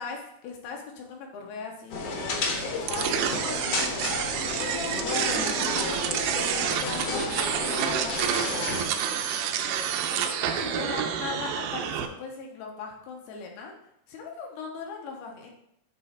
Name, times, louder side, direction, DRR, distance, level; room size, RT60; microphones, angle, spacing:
voice 1, 0.0-8.8 9.0-13.8 14.1-15.5, left 5 dB, 90° left, 0 dB, 3.0 m, -39 dB
sound 1, 1.9-8.9, left 2 dB, 75° left, 1.4 m, -31 dB
sound 2, 2.9-12.1, right 9 dB, 80° right, 2.0 m, -29 dB
8.6 x 3.2 x 4.5 m, 0.75 s
omnidirectional pair, 4.4 m